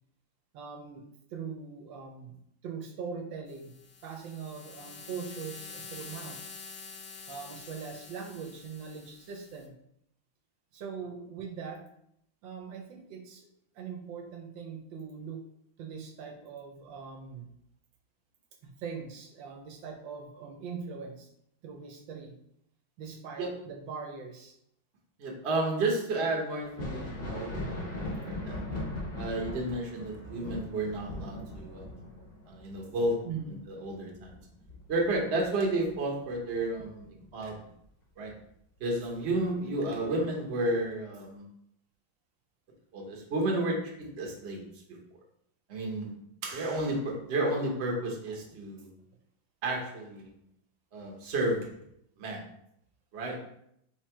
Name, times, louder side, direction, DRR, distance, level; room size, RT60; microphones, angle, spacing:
voice 1, 0.5-1.0 1.3-2.3 2.6-6.4 7.3-9.7 10.7-11.8 12.4-13.5 13.7-15.4 15.8-17.5 18.6-21.3 21.6-22.3 23.0-24.5 33.2-33.6 48.3-48.4, right 6 dB, 80° right, 3 dB, 1.3 m, -41 dB
sound 1, 3.5-9.7, left 4 dB, 80° left, 1.5 m, -47 dB
voice 2, 25.2-28.6 29.1-32.0 32.5-33.2 33.5-34.3 34.9-37.5 38.2-38.3 38.8-41.4 42.9-44.6 45.7-46.1 46.4-48.9 49.6-50.3 50.9-51.7 52.2-52.4 53.1-53.4, right 2 dB, 45° right, 0 dB, 0.9 m, -32 dB
Thunder, 26.6-35.9 36.3-37.5 39.1-39.2 40.0-40.1, left 1 dB, 45° left, 0.8 m, -39 dB
3.8 x 3.2 x 4.4 m, 0.74 s
omnidirectional pair, 2.1 m